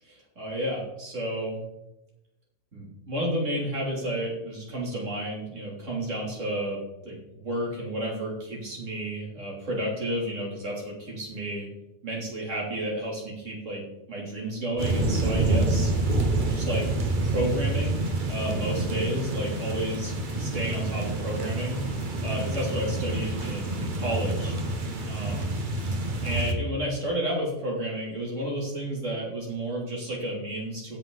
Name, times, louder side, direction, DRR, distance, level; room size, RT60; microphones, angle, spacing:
voice 1, 0.0-1.6 2.7-11.7 12.0-15.9 16.4-16.9 17.2-20.1 20.4-21.8 22.2-24.6 25.0-25.6 26.2-31.0, right 1 dB, 80° right, -4 dB, 3.5 m, -31 dB
sound 1, 14.8-26.5, right 2 dB, 45° right, 1.3 m, -28 dB
16.0 x 5.7 x 4.0 m, 0.88 s
omnidirectional pair, 1.2 m